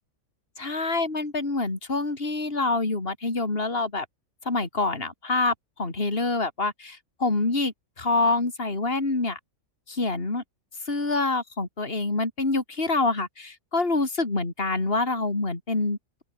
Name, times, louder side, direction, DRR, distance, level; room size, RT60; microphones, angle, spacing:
voice 1, 0.6-4.1 4.5-9.4 9.9-10.4 10.9-16.2, left 3 dB, 40° left, 3.9 m, -26 dB
open air
omnidirectional pair, 1.5 m